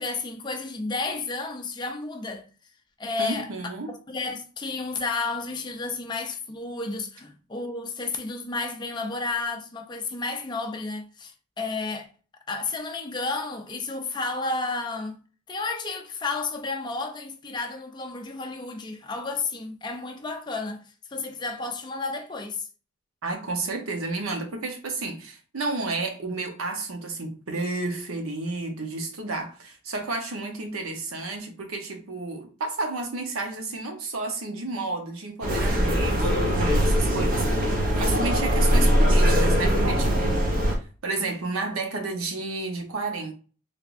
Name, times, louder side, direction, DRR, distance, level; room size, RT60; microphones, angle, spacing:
voice 1, 0.0-2.5 3.0-3.5 3.9-12.1 12.5-15.2 15.5-20.8 21.1-22.7, left 3 dB, 20° left, 0.5 m, -32 dB
voice 2, 3.2-4.0 23.2-43.3, right 3 dB, 90° right, 0.9 m, -31 dB
sound 1, 35.4-40.8, equal, 40° right, 0.7 m, -21 dB
3.3 x 3.1 x 2.5 m
head